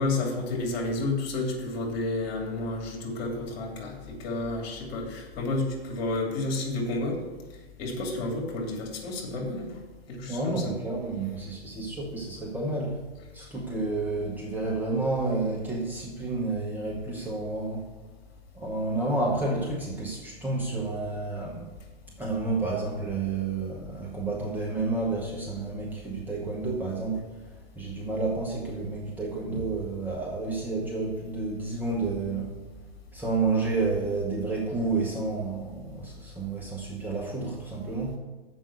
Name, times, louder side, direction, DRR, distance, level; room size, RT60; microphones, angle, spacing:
voice 1, 0.0-7.2 7.8-9.7 10.1-10.7, left 2 dB, 45° left, 1 dB, 2.7 m, -30 dB
voice 2, 10.3-13.0 13.3-17.9 18.5-21.7 22.2-27.3 27.8-32.5 33.1-38.2, right 3 dB, 5° right, -2 dB, 0.9 m, -30 dB
7.4 x 5.5 x 7.2 m, 1.3 s
hypercardioid pair, 115°, 31 cm